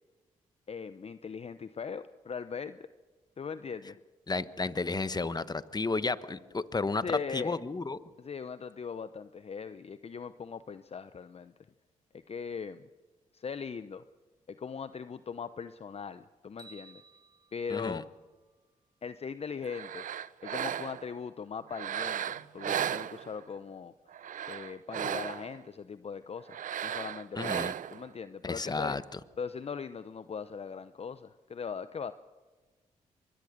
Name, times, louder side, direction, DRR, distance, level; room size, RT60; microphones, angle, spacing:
voice 1, 0.7-2.9 3.4-4.0 7.0-7.6 8.2-11.5 12.3-12.8 13.3-14.0 14.5-17.0 17.5-18.1 19.0-20.0 20.4-23.9 24.4-26.6 26.8-29.0 29.4-32.1, left 6 dB, 45° left, 13 dB, 0.8 m, -40 dB
voice 2, 4.3-8.0 17.7-18.0 27.4-27.7 28.4-29.2, left 3 dB, 25° left, 14 dB, 1.2 m, -32 dB
sound 1, 16.6-18.9, right 3 dB, 30° right, 4.7 m, -57 dB
sound 2, 19.6-21.1 21.7-23.6 24.1-25.6 26.5-28.1, right 9 dB, 60° right, 0.6 m, -35 dB
24.0 x 22.0 x 6.6 m, 1.3 s
supercardioid pair, 50°, 15 cm